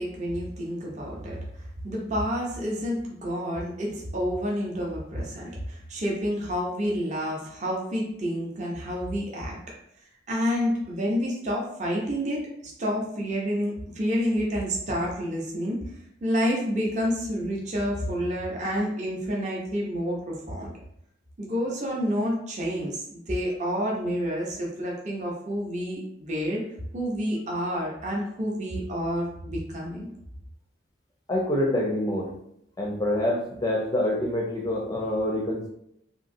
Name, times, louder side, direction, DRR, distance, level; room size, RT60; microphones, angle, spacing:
voice 1, 0.0-1.4 1.8-9.6 10.3-15.8 16.2-20.7 21.4-26.6 26.9-30.1, equal, 35° right, -3 dB, 0.6 m, -29 dB
voice 2, 31.3-32.3 32.8-35.7, left 1 dB, 20° left, -1 dB, 0.4 m, -26 dB
3.0 x 2.6 x 2.5 m, 0.74 s
head